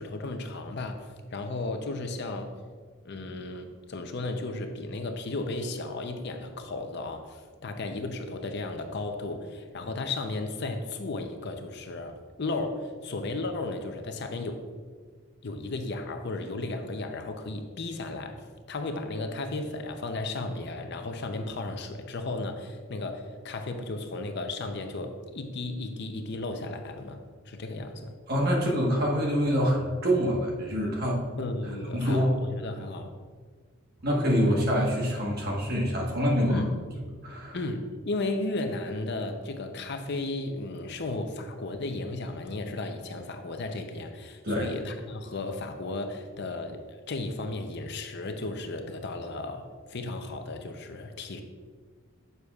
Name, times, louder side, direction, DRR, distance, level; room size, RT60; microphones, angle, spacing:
voice 1, 0.0-2.5 3.0-14.6 15.4-27.2 27.5-28.1 31.4-33.1 36.5-36.7 37.5-51.4, left 2 dB, 50° left, 6 dB, 0.6 m, -34 dB
voice 2, 28.3-31.2 31.9-32.3 34.0-36.6 37.2-37.6 44.4-44.7, equal, 45° right, -1 dB, 1.3 m, -25 dB
9.3 x 6.8 x 2.4 m, 1.5 s
head